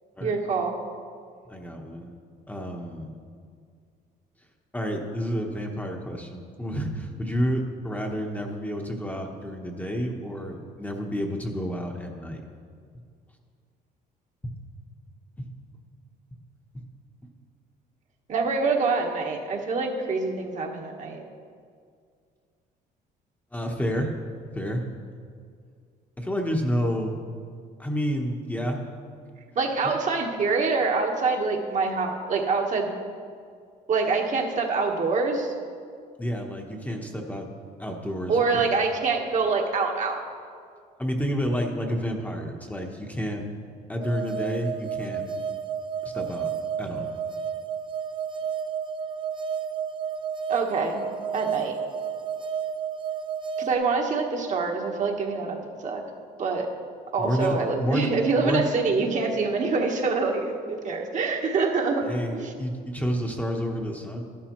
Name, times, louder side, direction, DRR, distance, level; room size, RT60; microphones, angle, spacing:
voice 1, 0.2-0.7 18.3-21.2 29.5-32.9 33.9-35.5 38.3-40.2 50.5-51.0 51.3-51.8 53.6-56.0 56.4-56.7 57.1-62.5, right 4 dB, 45° right, 2 dB, 1.3 m, -25 dB
voice 2, 1.5-2.1 2.5-3.1 4.7-12.4 15.4-15.5 23.5-24.2 24.5-24.9 26.2-27.2 27.8-28.8 36.2-37.5 37.8-38.7 41.0-43.5 43.9-45.2 46.0-46.5 46.8-47.1 57.2-58.7 62.0-64.2, equal, 10° left, 1 dB, 1.0 m, -29 dB
sound 1, 44.0-53.7, right 7 dB, 30° right, 0.7 m, -31 dB
12.0 x 11.5 x 3.1 m, 2.2 s
cardioid pair, 110°, 17 cm